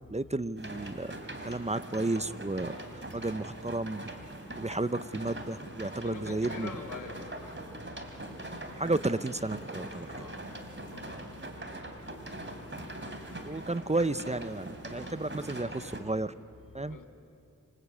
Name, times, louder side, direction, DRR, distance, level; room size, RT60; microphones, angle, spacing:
voice 1, 0.1-1.1 1.4-2.7 3.1-4.0 4.6-6.7 8.7-10.1 13.4-16.3 16.7-17.0, right 2 dB, 20° right, 0.6 m, -32 dB
sound 1, 0.6-16.0, right 1 dB, 40° right, 3.1 m, -42 dB
voice 2, 6.0-7.2 10.1-10.4 10.9-11.2 16.8-17.1, left 4 dB, 80° left, 2.2 m, -43 dB
26.5 x 25.5 x 8.4 m
wide cardioid pair, 60°, 32 cm